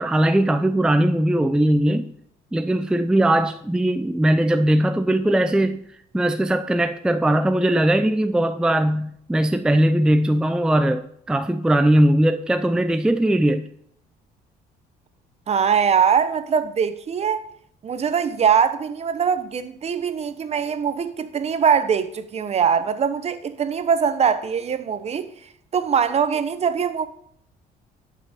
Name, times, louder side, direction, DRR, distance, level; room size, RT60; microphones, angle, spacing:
voice 1, 0.0-2.1 2.5-5.8 6.1-13.7, right 1 dB, 5° right, 0.5 m, -20 dB
voice 2, 15.5-17.4 17.8-25.3 25.7-27.1, right 7 dB, 40° right, 0.9 m, -22 dB
11.5 x 5.8 x 5.2 m
cardioid pair, 110°, 17 cm